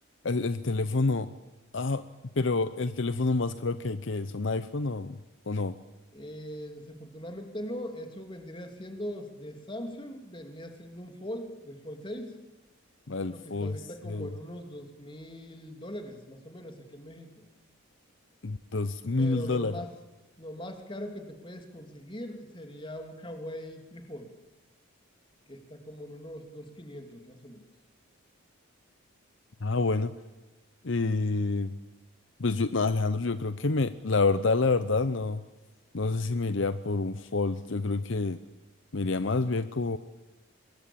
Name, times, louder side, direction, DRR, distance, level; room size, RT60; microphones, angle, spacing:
voice 1, 0.2-1.3 1.7-2.0 2.4-5.2 5.5-5.8 13.1-13.7 14.1-14.3 18.4-19.7 29.6-30.2 30.8-31.7 32.4-35.4 35.9-38.4 38.9-40.0, left 3 dB, 60° left, 13 dB, 0.8 m, -28 dB
voice 2, 6.1-12.4 13.2-17.5 19.2-19.9 20.4-24.3 25.5-27.6, equal, 25° left, 5 dB, 2.9 m, -41 dB
25.5 x 21.5 x 8.7 m, 1.1 s
head